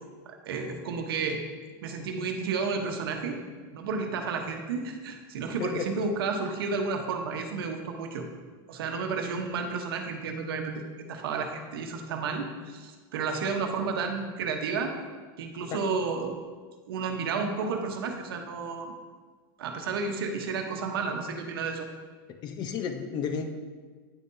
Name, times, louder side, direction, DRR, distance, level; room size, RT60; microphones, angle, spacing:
voice 1, 0.3-1.4 1.8-3.4 3.7-8.2 8.7-10.8 11.1-14.9 15.4-16.3 16.9-18.9 19.6-21.9, right 4 dB, 80° right, 4 dB, 0.9 m, -31 dB
voice 2, 22.4-23.5, left 6 dB, 35° left, 6 dB, 0.7 m, -32 dB
9.0 x 5.4 x 2.6 m, 1.5 s
supercardioid pair, 130°, 12 cm